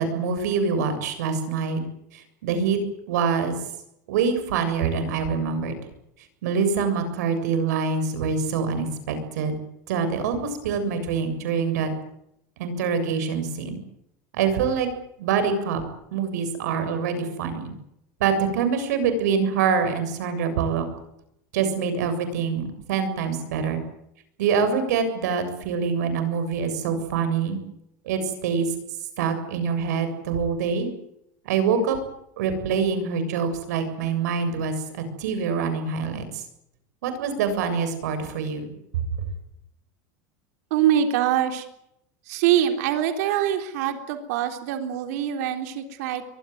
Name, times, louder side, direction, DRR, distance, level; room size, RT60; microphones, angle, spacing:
voice 1, 0.0-1.8 2.4-2.8 3.1-3.6 4.1-5.8 6.4-9.5 9.9-11.9 12.6-13.8 14.3-14.9 15.2-15.8 16.1-17.7 18.2-20.8 21.5-23.8 24.4-27.6 28.1-28.7 29.2-30.9 31.5-32.0 32.4-36.4 37.0-38.7, right 6 dB, 85° right, 9 dB, 7.3 m, -25 dB
voice 2, 40.7-41.7 42.3-46.2, right 10 dB, 65° right, 6 dB, 3.7 m, -24 dB
23.5 x 20.0 x 9.4 m, 0.79 s
supercardioid pair, 160°, 9 cm